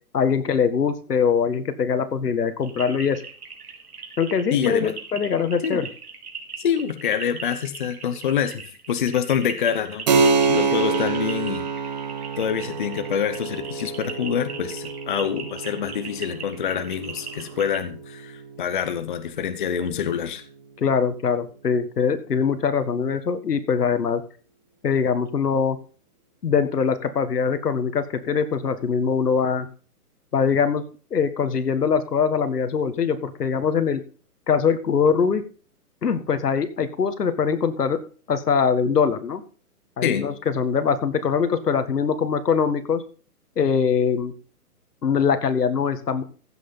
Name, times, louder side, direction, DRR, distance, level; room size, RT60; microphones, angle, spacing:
voice 1, 0.1-3.2 4.2-5.9 20.8-24.2 24.8-25.8 26.4-29.7 30.3-30.8 31.1-34.0 34.5-35.4 36.0-38.0 38.3-39.4 40.0-43.0 43.6-44.3 45.0-46.2, left 6 dB, 85° left, 10 dB, 1.9 m, -22 dB
sound 1, 2.6-17.8, right 5 dB, 70° right, 3.5 m, -39 dB
voice 2, 4.5-5.0 5.6-5.8 6.6-10.1 10.5-11.7 12.4-20.4 40.0-40.3, left 8 dB, 35° left, 9 dB, 0.9 m, -26 dB
Keyboard (musical), 10.1-20.3, right 4 dB, 30° right, 1.0 m, -27 dB
15.0 x 6.4 x 5.5 m, 0.39 s
hypercardioid pair, 165°, 46 cm